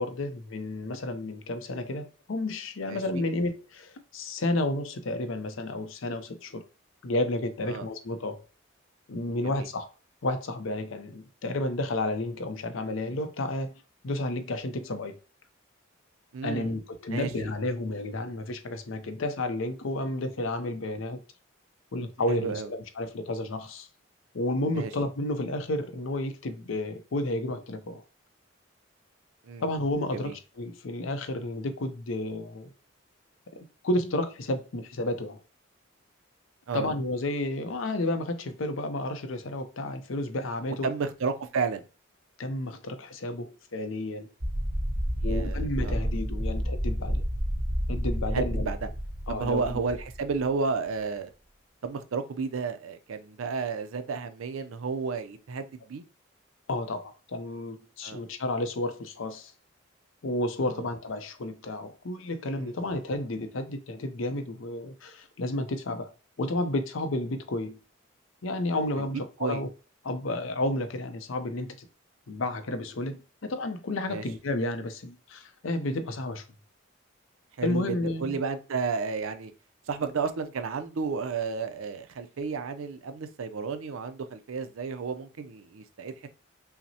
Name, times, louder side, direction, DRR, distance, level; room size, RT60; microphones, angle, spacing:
voice 1, 0.0-6.6 7.0-8.4 9.1-9.9 10.2-13.7 14.0-15.2 16.4-21.2 21.9-23.9 24.3-28.0 29.6-32.7 33.5-35.4 36.7-40.9 42.4-44.3 45.2-47.2 47.9-48.7 49.3-49.8 56.7-59.5 60.2-66.1 66.4-67.8 68.4-69.7 70.0-71.9 72.3-76.4 77.6-78.4, left 2 dB, 75° left, 0.6 m, -31 dB
voice 2, 2.9-3.2 7.7-7.9 9.4-9.7 16.3-16.7 17.1-17.3 22.3-22.7 24.7-24.9 29.4-29.6 30.1-30.4 36.7-36.9 40.8-41.8 45.2-46.0 48.3-48.8 49.3-51.3 51.8-56.0 58.0-58.2 60.7-60.8 62.6-62.7 69.0-69.1 69.4-69.6 74.1-74.2 77.6-79.5 79.9-86.3, right 5 dB, 85° right, 0.5 m, -32 dB
sound 1, 44.4-50.5, equal, 20° right, 0.5 m, -30 dB
5.6 x 2.1 x 2.8 m
head